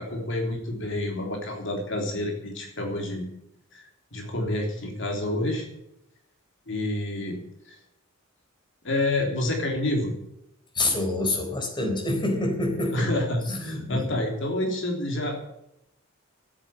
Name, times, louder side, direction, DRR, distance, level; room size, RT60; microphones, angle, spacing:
voice 1, 0.0-3.2 3.7-5.7 6.7-7.8 8.8-10.2 12.9-15.5, left 1 dB, 60° left, 2 dB, 3.4 m, -28 dB
voice 2, 10.7-13.1 13.5-14.2, left 2 dB, 20° left, 2 dB, 4.2 m, -27 dB
13.5 x 9.1 x 9.9 m, 0.83 s
head